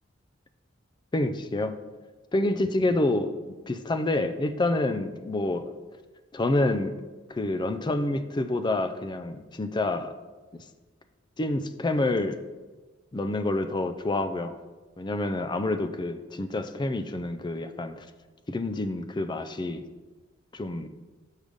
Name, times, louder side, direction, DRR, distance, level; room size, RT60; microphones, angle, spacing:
voice 1, 1.1-1.8 2.3-5.7 6.3-7.0 7.3-10.1 10.5-10.6 11.4-12.4 13.1-14.6 15.0-18.1 18.5-19.8 20.5-20.9, left 2 dB, 25° left, 10 dB, 0.4 m, -28 dB
6.4 x 5.3 x 5.1 m, 1.3 s
head